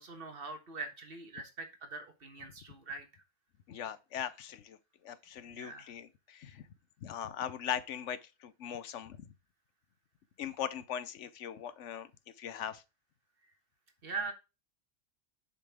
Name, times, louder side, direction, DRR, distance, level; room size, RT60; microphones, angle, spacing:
voice 1, 0.0-3.1 5.5-5.9 14.0-14.3, right 4 dB, 55° right, 1.5 m, -42 dB
voice 2, 3.7-4.8 5.0-6.7 7.0-9.2 10.4-12.1 12.4-12.8, left 9 dB, 85° left, 1.0 m, -40 dB
6.6 x 5.4 x 3.4 m
omnidirectional pair, 1.2 m